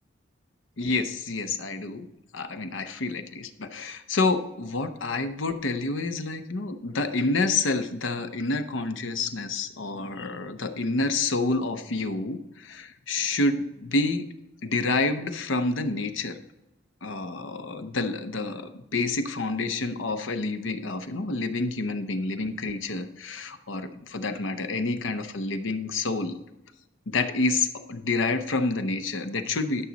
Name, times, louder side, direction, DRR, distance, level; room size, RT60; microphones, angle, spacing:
voice 1, 0.8-2.1 2.3-14.3 14.6-16.4 17.0-26.4 27.1-29.9, left 3 dB, 80° left, 8 dB, 0.8 m, -28 dB
12.0 x 6.4 x 4.0 m, 0.96 s
head